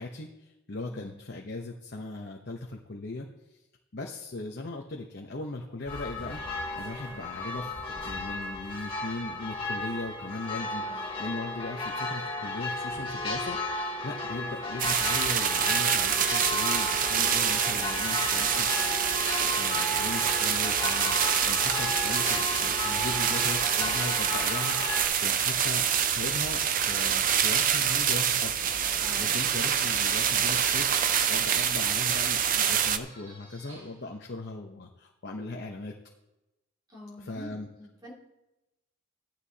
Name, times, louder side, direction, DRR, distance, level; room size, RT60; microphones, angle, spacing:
voice 1, 0.0-3.6 3.9-18.7 19.5-21.2 21.4-31.0 31.3-35.9 37.2-37.7, left 2 dB, 50° left, 1 dB, 0.9 m, -38 dB
voice 2, 0.9-1.2 10.8-11.1 23.1-23.3 29.0-29.4 36.9-38.1, equal, 20° right, -4 dB, 2.5 m, -46 dB
sound 1, 5.9-25.0, left 2 dB, 25° left, 2.1 m, -34 dB
sound 2, 14.8-33.0, right 8 dB, 40° right, 0.5 m, -26 dB
Dog, 15.7-22.3 23.1-26.7 27.1-27.3 27.6-27.7 28.5-28.6 28.8-29.4 30.0-34.1, equal, 85° right, 4.3 m, -50 dB
15.0 x 11.0 x 2.9 m, 0.96 s
head